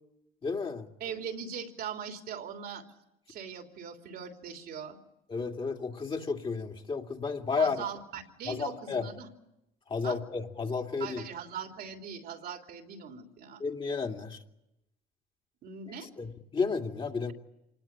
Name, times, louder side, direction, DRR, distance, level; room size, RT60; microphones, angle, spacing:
voice 1, 0.4-0.9 5.3-7.8 8.5-9.1 9.9-11.2 13.6-14.4 16.2-17.3, left 4 dB, 30° left, 2 dB, 2.6 m, -32 dB
voice 2, 1.0-2.8 3.3-5.0 7.6-9.3 10.0-10.2 11.0-13.6 15.6-16.1, right 7 dB, 65° right, 4 dB, 3.2 m, -40 dB
27.0 x 19.5 x 8.9 m, 0.88 s
cardioid pair, 110°, 17 cm